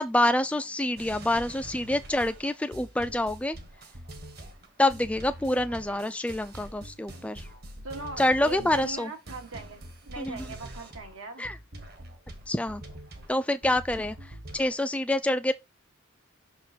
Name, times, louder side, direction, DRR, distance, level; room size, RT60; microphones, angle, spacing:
voice 1, 0.0-3.6 4.8-7.5 8.2-9.1 10.2-10.5 11.4-11.6 12.5-12.8 13.3-15.5, left 1 dB, 5° left, 0.3 m, -27 dB
sound 1, 1.0-11.2 11.4-14.8, right 1 dB, 45° right, 1.2 m, -44 dB
voice 2, 5.7-6.1 7.8-11.5, right 3 dB, 80° right, 1.6 m, -41 dB
6.1 x 4.4 x 4.1 m
head